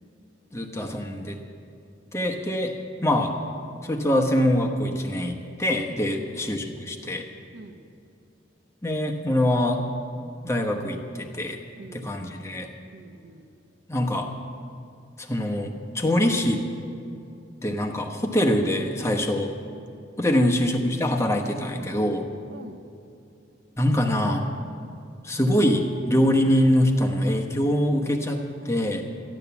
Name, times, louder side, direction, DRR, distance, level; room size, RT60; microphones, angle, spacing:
voice 1, 0.5-1.4 2.1-3.4 3.8-7.3 8.8-9.9 10.4-11.6 11.9-12.7 13.9-14.3 15.2-16.7 17.6-19.5 20.2-22.3 23.8-24.5 25.2-29.1, left 1 dB, 15° left, 2 dB, 1.0 m, -24 dB
voice 2, 7.5-7.8 11.8-12.2 12.9-13.5 20.3-20.4 22.5-22.8, right 2 dB, 65° right, 7 dB, 0.8 m, -45 dB
14.0 x 10.5 x 7.0 m, 2.6 s
head